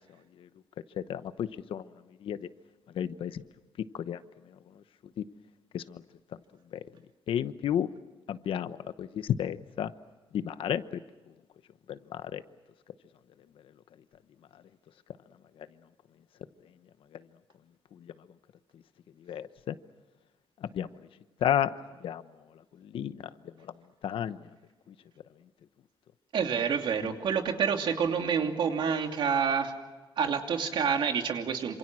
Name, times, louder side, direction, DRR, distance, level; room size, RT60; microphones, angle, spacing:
voice 1, 1.1-1.9 2.2-2.5 2.9-3.4 3.9-4.2 5.7-6.0 6.7-6.8 7.3-7.9 8.3-9.9 10.3-11.0 11.9-12.4 17.9-18.1 19.3-19.7 20.6-20.9 21.4-21.7 22.0-22.2 22.8-23.3 24.0-24.4 24.9-25.0 27.0-27.1, left 10 dB, 75° left, 12 dB, 1.0 m, -32 dB
voice 2, 26.3-29.7 30.2-31.8, right 6 dB, 65° right, 4 dB, 2.7 m, -28 dB
28.0 x 27.0 x 6.3 m, 1.3 s
wide cardioid pair, 175°, 9 cm